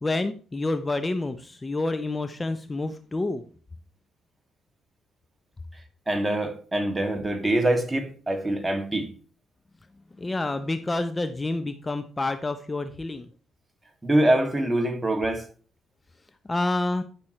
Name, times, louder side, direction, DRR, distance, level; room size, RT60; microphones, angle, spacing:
voice 1, 0.0-3.4 10.2-13.3 16.5-17.0, left 2 dB, 25° left, 0.8 m, -28 dB
voice 2, 6.1-9.1 14.0-15.5, right 1 dB, 20° right, 2.3 m, -24 dB
12.0 x 6.1 x 3.2 m
supercardioid pair, 55°, 0 cm